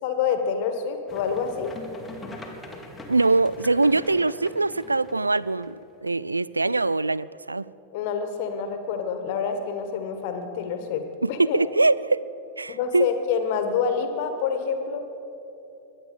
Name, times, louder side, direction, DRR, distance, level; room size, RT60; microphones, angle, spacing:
voice 1, 0.0-1.7 7.9-11.7 12.7-15.0, left 6 dB, 50° left, 7 dB, 1.8 m, -27 dB
sound 1, 1.1-6.1, left 2 dB, 10° left, 2.2 m, -43 dB
voice 2, 3.1-7.7 11.2-12.3 12.6-13.1, right 3 dB, 80° right, 20 dB, 0.3 m, -23 dB
22.5 x 9.0 x 7.1 m, 2.9 s
figure-of-eight pair, 90°, 0 cm